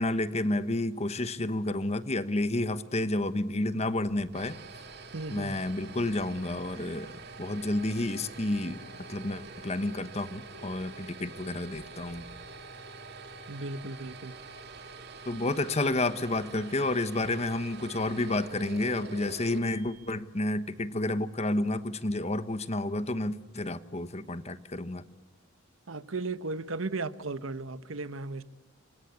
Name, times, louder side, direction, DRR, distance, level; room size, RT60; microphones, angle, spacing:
voice 1, 0.0-4.6 5.3-8.8 9.1-12.2 15.3-25.0, left 2 dB, 30° left, 1.2 m, -30 dB
sound 1, 4.1-20.3, right 3 dB, 55° right, 2.3 m, -46 dB
voice 2, 5.1-5.6 13.5-14.4 25.9-28.4, right 3 dB, 80° right, 1.1 m, -35 dB
28.5 x 24.0 x 8.3 m
head